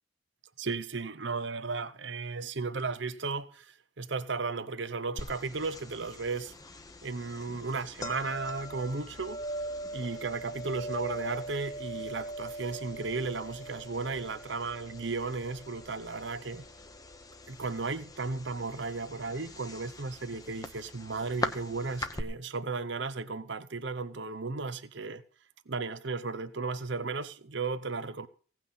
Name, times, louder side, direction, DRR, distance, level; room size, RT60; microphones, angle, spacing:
voice 1, 0.6-6.5 7.0-9.4 9.9-16.6 17.5-25.2 25.7-28.3, right 4 dB, 60° right, 0.8 m, -35 dB
sound 1, 5.2-22.2, left 1 dB, 20° left, 1.0 m, -41 dB
17.0 x 6.0 x 8.7 m
head